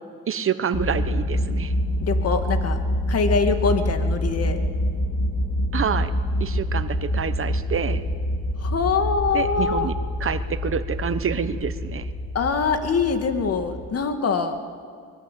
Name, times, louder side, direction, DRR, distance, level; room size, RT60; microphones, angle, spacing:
voice 1, 0.3-1.7 5.7-6.1 6.4-8.0 9.3-9.9 10.2-12.1, right 7 dB, 45° right, 12 dB, 1.2 m, -27 dB
sound 1, 0.7-13.9, left 1 dB, 75° left, 3.8 m, -26 dB
voice 2, 2.0-2.8 3.1-4.6 8.6-9.9 12.3-14.6, left 5 dB, 55° left, 7 dB, 2.3 m, -23 dB
24.0 x 20.5 x 8.6 m, 2.1 s
cardioid pair, 90°, 30 cm